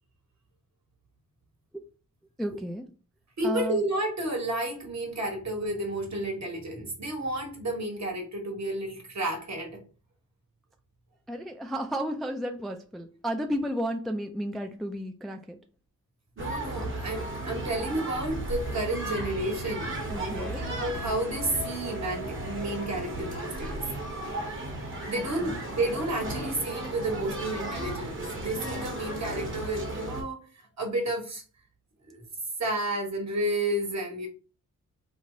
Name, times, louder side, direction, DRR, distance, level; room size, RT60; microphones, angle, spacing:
voice 1, 2.4-2.8 3.4-3.8 11.3-15.6 20.1-20.6 25.2-25.6, equal, ahead, 4 dB, 0.4 m, -33 dB
voice 2, 3.4-9.8 16.4-23.8 25.0-30.4 30.8-31.4 32.0-32.3 32.6-34.3, right 1 dB, 55° right, 1 dB, 1.4 m, -31 dB
sound 1, 16.4-30.2, right 1 dB, 35° right, 1.1 m, -35 dB
3.2 x 2.2 x 3.8 m, 0.35 s
cardioid pair, 85°, 33 cm